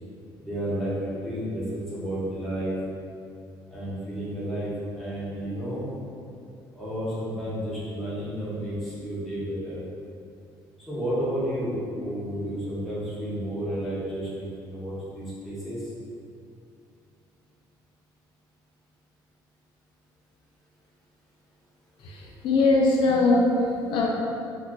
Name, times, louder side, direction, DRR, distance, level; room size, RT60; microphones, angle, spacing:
voice 1, 0.4-2.8 3.7-5.9 6.7-9.8 10.9-15.9, right 1 dB, ahead, -11 dB, 1.0 m, -31 dB
voice 2, 22.0-24.1, left 2 dB, 70° left, -2 dB, 0.4 m, -22 dB
2.3 x 2.2 x 3.8 m, 2.5 s
cardioid pair, 120°, 9 cm